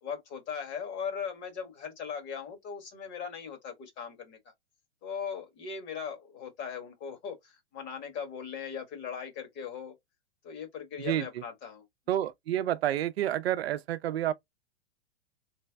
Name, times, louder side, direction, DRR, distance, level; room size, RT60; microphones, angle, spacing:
voice 1, 0.0-4.4 5.0-10.0 10.4-11.8, left 7 dB, 35° left, 1.4 m, -39 dB
voice 2, 12.1-14.3, right 12 dB, 65° right, 0.5 m, -29 dB
3.3 x 2.1 x 3.3 m
hypercardioid pair, 120°, 33 cm